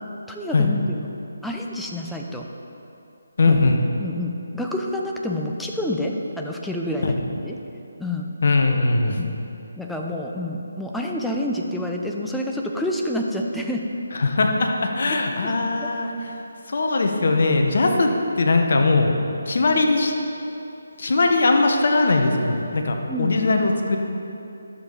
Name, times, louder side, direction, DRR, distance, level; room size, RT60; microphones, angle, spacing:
voice 1, 0.3-1.1 1.4-2.5 3.5-3.6 4.0-7.1 7.4-7.6 8.0-8.3 9.2-9.3 9.8-13.8 15.4-15.5 15.8-15.9 23.1-23.4, left 1 dB, ahead, 0 dB, 0.6 m, -28 dB
voice 2, 3.4-3.8 7.0-7.1 8.4-9.2 14.2-16.1 16.7-18.1 18.4-19.1 19.5-20.1 21.0-24.0, left 3 dB, 60° left, 3 dB, 1.1 m, -20 dB
11.5 x 7.0 x 4.1 m, 2.8 s
figure-of-eight pair, 155°, 0 cm